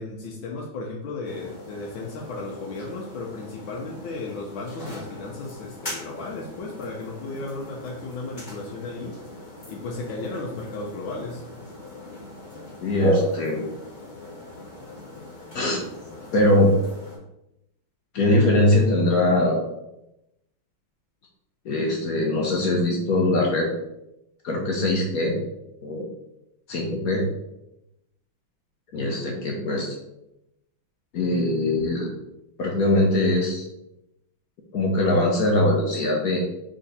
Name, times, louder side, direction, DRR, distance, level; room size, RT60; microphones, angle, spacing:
voice 1, 0.0-9.2 9.7-11.4, left 3 dB, 90° left, -2 dB, 1.5 m, -35 dB
sound 1, 1.2-17.2, equal, 25° left, 1.4 m, -36 dB
voice 2, 12.8-13.6 15.5-15.8 16.3-16.7 18.1-19.6 21.6-23.7 24.4-25.4 25.8-26.0 26.7-27.2 28.9-29.9 31.1-32.1 32.6-33.7 34.7-36.4, left 1 dB, 65° left, 0 dB, 0.9 m, -21 dB
3.8 x 3.3 x 4.0 m, 0.86 s
omnidirectional pair, 2.1 m